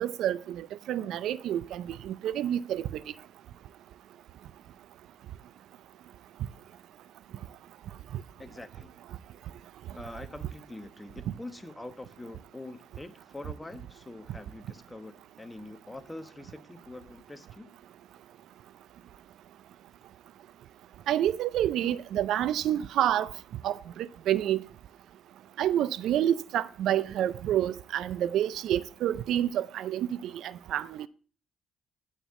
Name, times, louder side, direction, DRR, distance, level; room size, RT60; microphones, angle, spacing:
voice 1, 0.0-3.0 8.1-8.2 21.1-23.3 23.6-24.6 25.6-31.1, right 11 dB, 75° right, 0.4 m, -28 dB
voice 2, 8.4-8.9 9.9-17.8, left 2 dB, 15° left, 1.0 m, -44 dB
9.1 x 4.5 x 6.9 m
supercardioid pair, 75°, 0 cm